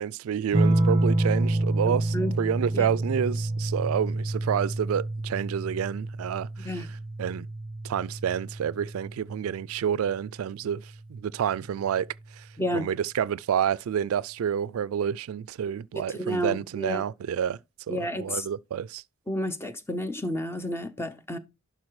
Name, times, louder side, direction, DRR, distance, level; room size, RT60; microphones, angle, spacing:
voice 1, 0.0-6.8 7.2-7.5 7.8-10.8 11.1-12.1 12.7-17.6 17.9-19.0, right 8 dB, 85° right, 0.3 m, -29 dB
sound 1, 0.5-9.6 11.0-11.6, right 1 dB, 25° right, 0.8 m, -28 dB
voice 2, 1.8-2.4 2.7-2.9 6.6-6.9 12.6-12.9 15.9-17.0 17.9-18.5 19.3-21.4, equal, 10° left, 0.7 m, -31 dB
11.5 x 3.9 x 4.7 m
head